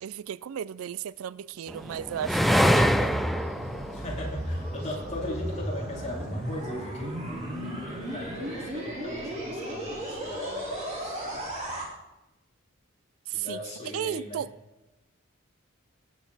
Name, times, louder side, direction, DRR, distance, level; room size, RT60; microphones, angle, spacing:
voice 1, 0.0-3.2 13.3-13.6 13.9-14.5, right 9 dB, 75° right, 0.3 m, -34 dB
sound 1, 1.7-5.3 6.1-6.9, equal, ahead, 0.4 m, -25 dB
sound 2, 1.8-11.9, right 1 dB, 30° right, 4.0 m, -35 dB
voice 2, 3.9-11.5 13.3-14.4, left 1 dB, 30° left, 3.2 m, -38 dB
19.0 x 8.1 x 4.1 m
head